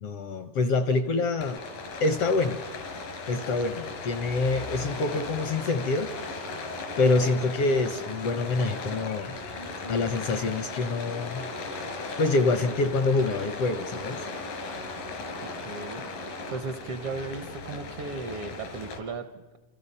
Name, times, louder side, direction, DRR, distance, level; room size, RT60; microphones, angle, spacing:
voice 1, 0.0-1.6 2.0-2.6 3.3-6.1 7.0-9.3 9.9-11.4 12.2-14.3, left 3 dB, 70° left, 10 dB, 1.4 m, -26 dB
Rain, 1.4-19.0, left 3 dB, 85° left, 5.3 m, -37 dB
voice 2, 15.4-16.0 16.5-19.6, right 4 dB, 70° right, 10 dB, 1.4 m, -36 dB
29.5 x 28.0 x 5.5 m, 1.3 s
omnidirectional pair, 3.8 m